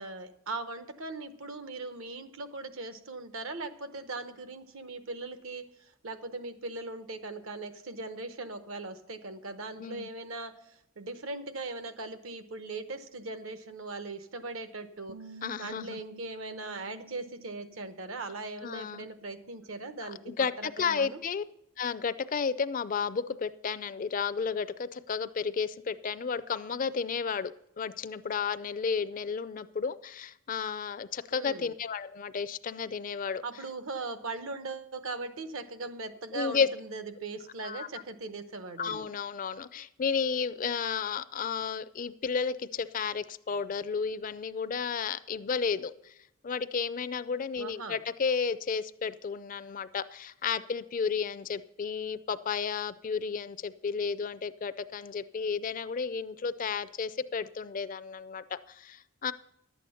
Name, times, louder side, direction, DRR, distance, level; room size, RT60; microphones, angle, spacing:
voice 1, 0.0-21.2 31.3-31.7 33.4-39.1 47.6-48.0, right 3 dB, 70° right, 10 dB, 0.9 m, -40 dB
Bass guitar, 15.1-21.3, right 2 dB, 40° right, 0.5 m, -54 dB
voice 2, 15.4-16.0 18.6-19.1 20.3-21.4 21.8-27.5 27.8-33.4 36.3-36.7 37.6-37.9 38.8-46.1 46.4-59.3, left 6 dB, 40° left, 16 dB, 0.4 m, -32 dB
11.5 x 8.4 x 5.6 m, 0.80 s
head